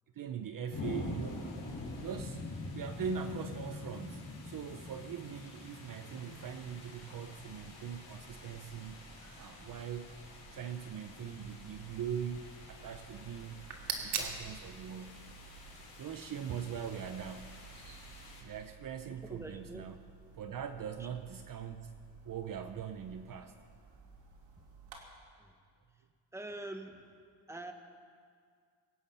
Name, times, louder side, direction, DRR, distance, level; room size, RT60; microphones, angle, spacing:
voice 1, 0.1-1.4 2.0-2.5 2.7-9.0 9.4-10.1 10.5-13.7 13.9-15.2 16.0-17.6 18.4-20.0 20.4-22.0 22.3-23.6, right 7 dB, 50° right, 9 dB, 0.8 m, -41 dB
sound 1, 0.7-18.4, left 2 dB, 45° left, 5.0 m, -46 dB
sound 2, 6.1-25.0, right 5 dB, 85° right, 2.5 m, -56 dB
sound 3, 13.6-18.6, right 5 dB, 65° right, 2.0 m, -44 dB
voice 2, 19.1-19.9 21.0-21.1 25.4-25.5 26.3-27.0 27.5-27.7, right 1 dB, 5° right, 5 dB, 1.3 m, -44 dB
23.5 x 9.0 x 5.5 m, 2.1 s
cardioid pair, 110°, 44 cm